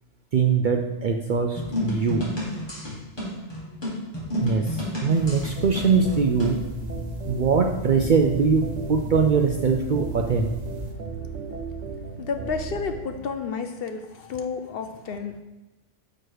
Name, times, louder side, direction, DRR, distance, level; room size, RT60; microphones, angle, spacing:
voice 1, 0.3-2.3 4.4-6.6 7.3-10.5, right 5 dB, 60° right, 3 dB, 0.5 m, -22 dB
sound 1, 1.6-6.6, equal, 20° left, 2.1 m, -31 dB
sound 2, 5.1-10.9, left 1 dB, 40° right, 0.9 m, -37 dB
sound 3, 5.6-13.2, right 5 dB, 80° right, 1.2 m, -36 dB
voice 2, 12.2-15.4, left 5 dB, 60° left, 7 dB, 0.7 m, -31 dB
6.2 x 4.9 x 4.6 m, 1.1 s
omnidirectional pair, 1.2 m